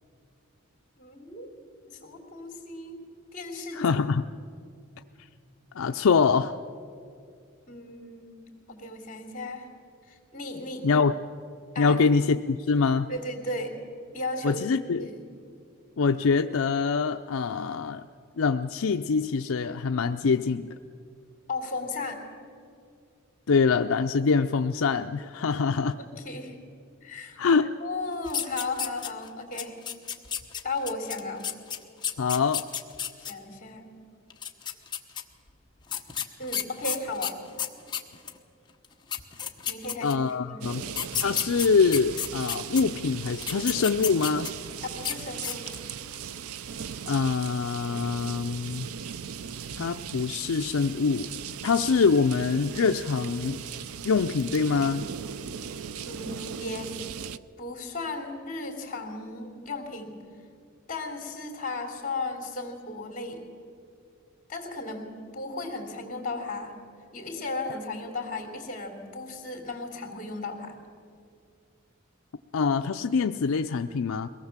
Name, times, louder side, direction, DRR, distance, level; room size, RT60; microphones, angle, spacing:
voice 1, 1.0-1.5 1.9-3.0 3.3-3.8 7.7-9.7 10.1-10.9 11.7-12.0 13.1-13.8 14.1-15.2 21.5-22.2 26.0-26.5 27.0-29.8 30.6-31.5 33.2-33.9 36.4-37.4 39.7-40.2 40.4-40.8 44.8-45.7 56.1-57.0 57.6-60.2 60.9-63.4 64.5-66.7 67.1-70.8, left 2 dB, 35° left, 4 dB, 3.3 m, -35 dB
voice 2, 3.7-4.3 5.8-6.6 10.8-11.2 11.8-13.1 14.4-15.1 16.0-18.0 18.4-20.7 23.5-26.0 27.4-27.7 32.2-32.6 40.0-40.8 41.2-44.5 47.1-48.9 49.8-51.3 51.6-53.6 54.0-55.1 72.5-74.3, left 5 dB, 70° left, 7 dB, 0.5 m, -24 dB
sound 1, 28.3-29.3 29.6-33.3 34.3-35.2 35.9-38.4 38.8-38.9 39.1-40.3 40.9-42.8 43.3-44.7 45.0-45.2 45.4-45.9, left 8 dB, 20° left, 1.0 m, -32 dB
sound 2, 40.6-57.4, right 7 dB, 85° right, 0.5 m, -38 dB
23.0 x 18.0 x 7.3 m, 2.4 s
head